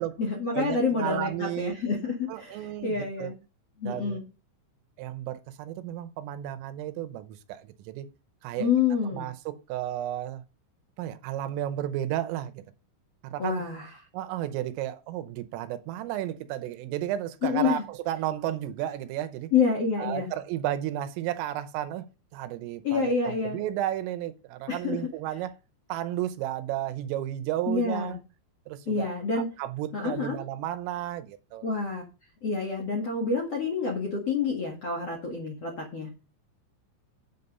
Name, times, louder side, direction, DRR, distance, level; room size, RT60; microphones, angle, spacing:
voice 1, 0.0-3.4 3.8-4.2 8.6-9.3 13.4-13.9 17.4-17.8 19.5-20.3 22.8-23.6 24.7-25.0 27.7-28.2 28.9-29.5 29.9-30.4 31.6-32.0 32.4-36.1, left 5 dB, 50° left, 1.9 m, -28 dB
voice 2, 0.5-1.8 2.3-3.3 3.9-4.2 5.0-8.1 8.4-8.7 9.0-10.4 11.0-12.6 13.2-13.7 14.1-19.5 20.0-25.5 25.9-28.2 28.7-31.7, right 12 dB, 85° right, 3.5 m, -33 dB
8.3 x 8.3 x 5.4 m
omnidirectional pair, 5.8 m